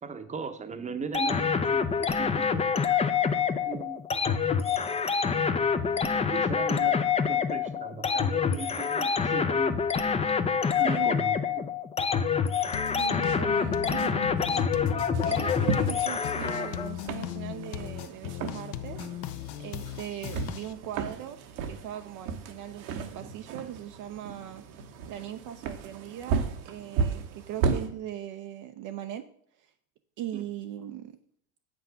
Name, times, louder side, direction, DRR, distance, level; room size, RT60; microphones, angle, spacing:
voice 1, 0.0-2.6 3.6-4.0 5.5-6.9 7.3-9.8 10.8-11.7 30.3-30.4, right 4 dB, 15° right, 9 dB, 0.9 m, -38 dB
sound 1, 1.1-16.9, left 6 dB, 15° left, 0.6 m, -26 dB
voice 2, 10.8-11.2 12.9-14.7 15.2-19.0 19.6-21.4 21.7-24.6 25.1-29.3 29.6-29.7 30.2-31.2, right 11 dB, 45° right, 7 dB, 0.7 m, -40 dB
sound 2, 12.7-20.7, left 12 dB, 55° left, 0.7 m, -38 dB
sound 3, 15.1-27.9, right 5 dB, 70° right, 1.3 m, -35 dB
7.6 x 6.1 x 5.7 m, 0.64 s
hypercardioid pair, 95°, 44 cm